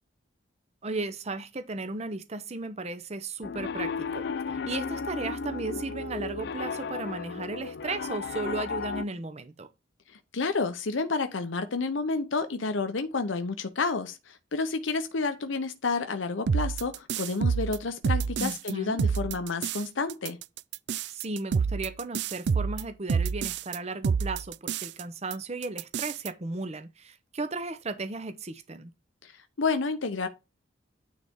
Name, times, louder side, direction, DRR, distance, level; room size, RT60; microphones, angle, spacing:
voice 1, 0.8-9.7 18.4-19.0 21.1-28.9, right 3 dB, 35° right, 0.7 m, -35 dB
Piano, 3.4-9.0, left 5 dB, 55° left, 0.4 m, -34 dB
voice 2, 10.1-20.4 29.2-30.3, left 4 dB, 80° left, 0.8 m, -30 dB
sound 1, 16.5-18.7 19.0-19.8 20.1-23.8 24.0-25.0 25.3-25.4 25.6-26.3, right 6 dB, 60° right, 0.4 m, -28 dB
9.6 x 4.1 x 3.6 m
head